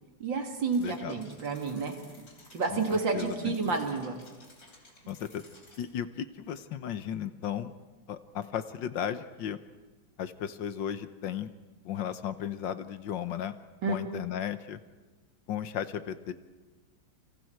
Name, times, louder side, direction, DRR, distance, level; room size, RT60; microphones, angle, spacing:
voice 1, 0.2-2.3 2.5-4.2 13.8-13.9, right 4 dB, 70° right, 4 dB, 2.9 m, -30 dB
sound 1, 0.7-5.8, left 2 dB, 45° left, 3.9 m, -56 dB
voice 2, 0.8-1.2 2.7-2.8 3.1-3.8 5.1-5.4 5.8-7.7 8.1-9.6 10.2-11.5 11.8-13.5 13.9-14.8 15.5-16.3, left 9 dB, 70° left, 12 dB, 1.6 m, -35 dB
29.0 x 25.5 x 4.6 m, 1.3 s
omnidirectional pair, 2.2 m